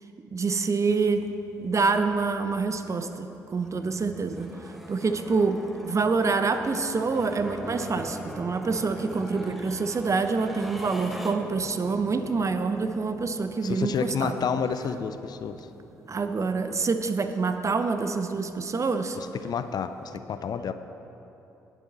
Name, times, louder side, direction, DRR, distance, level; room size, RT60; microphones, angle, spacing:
voice 1, 0.3-1.2 1.6-4.5 4.9-5.6 5.8-14.4 16.1-19.2, right 4 dB, 35° right, 8 dB, 0.9 m, -26 dB
sound 1, 0.9-20.2, equal, ahead, 1.3 m, -44 dB
voice 2, 13.6-15.7 19.1-20.7, left 6 dB, 50° left, 10 dB, 0.6 m, -30 dB
19.0 x 7.1 x 4.2 m, 3.0 s
hypercardioid pair, 45°, 9 cm